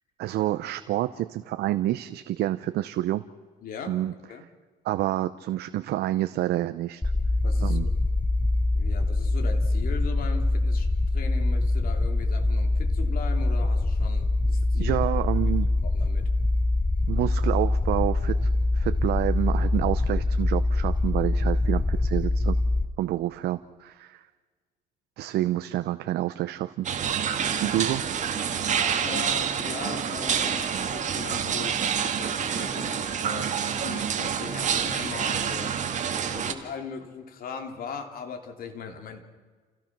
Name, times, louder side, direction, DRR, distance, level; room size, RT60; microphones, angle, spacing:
voice 1, 0.2-3.2 3.9-4.1 4.8-7.0 7.6-7.9 14.7-15.7 17.1-18.5 18.7-22.6 23.0-24.2 25.2-26.9 27.6-28.0, right 14 dB, 75° right, 11 dB, 0.7 m, -28 dB
voice 2, 3.6-4.0 4.3-4.5 7.4-8.0 8.7-15.0 15.4-15.5 15.8-16.3 25.4-25.5 29.0-35.7 36.3-39.2, left 6 dB, 60° left, 5 dB, 3.0 m, -39 dB
sound 1, 7.0-22.9, left 2 dB, 10° left, 0.5 m, -24 dB
sound 2, 26.8-36.5, right 7 dB, 45° right, 2.0 m, -27 dB
28.5 x 16.5 x 6.0 m, 1.5 s
cardioid pair, 110°, 17 cm